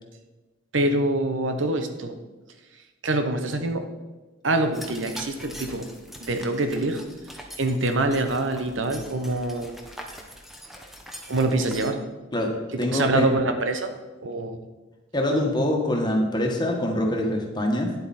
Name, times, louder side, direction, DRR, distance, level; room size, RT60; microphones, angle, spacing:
voice 1, 0.7-2.2 3.0-3.9 4.4-5.9 6.2-7.0 7.6-9.8 11.3-12.0 12.7-14.0 14.2-14.6, right 2 dB, 85° right, 7 dB, 1.0 m, -25 dB
sound 1, 4.7-11.9, equal, ahead, 1.0 m, -42 dB
voice 2, 12.8-13.3 15.1-17.9, left 1 dB, 25° left, 1 dB, 1.5 m, -24 dB
9.7 x 8.0 x 4.3 m, 1.2 s
head